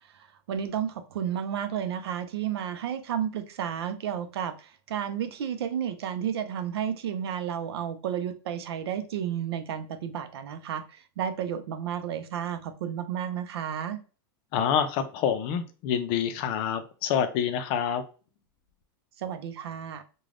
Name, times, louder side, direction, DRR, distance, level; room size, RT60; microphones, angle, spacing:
voice 1, 0.1-14.0 19.2-20.0, right 9 dB, 90° right, 10 dB, 0.5 m, -32 dB
voice 2, 14.5-18.0, left 8 dB, 45° left, 9 dB, 0.5 m, -27 dB
3.2 x 2.2 x 2.5 m, 0.36 s
supercardioid pair, 135°, 13 cm